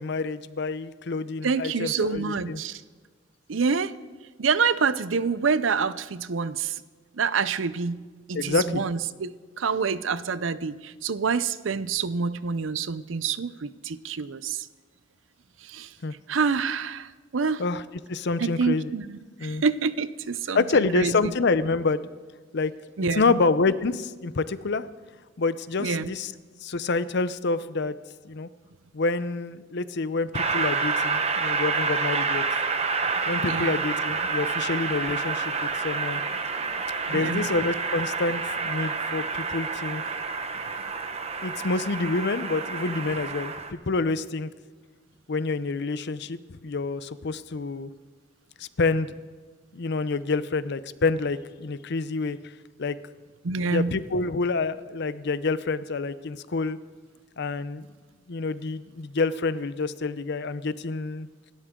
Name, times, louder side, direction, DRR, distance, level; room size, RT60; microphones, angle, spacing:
voice 1, 0.0-2.6 8.3-8.8 16.0-16.1 17.6-17.8 18.1-18.9 19.4-19.6 20.5-22.1 22.5-22.7 23.1-24.8 25.4-26.3 26.6-27.9 28.2-28.5 28.9-32.4 33.3-36.2 37.1-40.0 41.4-43.5 43.9-44.5 45.3-47.9 48.6-49.1 49.7-52.4 52.8-53.0 53.7-56.8 57.4-57.9 58.3-61.3, left 3 dB, 60° left, 15 dB, 0.7 m, -27 dB
voice 2, 1.4-2.8 3.5-3.9 4.4-6.8 7.1-8.0 8.3-14.7 15.6-15.9 16.3-17.6 18.4-21.1 23.0-23.4 25.8-26.1 33.3-33.8 37.1-37.5 53.4-53.9, right 5 dB, 85° right, 16 dB, 0.6 m, -27 dB
Train, 30.3-43.7, right 4 dB, 35° right, 1.1 m, -28 dB
27.0 x 12.5 x 3.8 m, 1.4 s
head